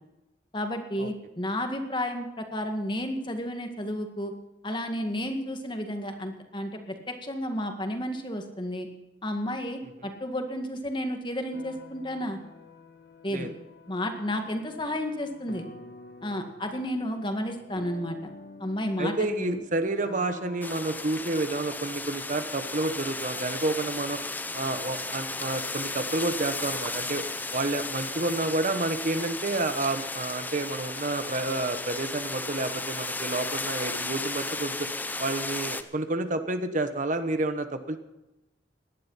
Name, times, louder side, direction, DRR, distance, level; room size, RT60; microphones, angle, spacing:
voice 1, 0.5-4.3 4.6-8.9 9.2-12.4 13.2-13.5 13.9-15.7 16.2-18.2 18.6-19.6, equal, 25° left, 5 dB, 1.9 m, -32 dB
sound 1, 11.5-21.7, left 3 dB, 60° left, 1.4 m, -49 dB
voice 2, 19.0-24.2 24.5-27.2 27.5-34.9 35.2-38.0, right 2 dB, 45° right, 9 dB, 1.0 m, -29 dB
sound 2, 20.6-35.8, left 2 dB, 10° left, 0.7 m, -34 dB
18.0 x 11.5 x 5.7 m, 1.0 s
head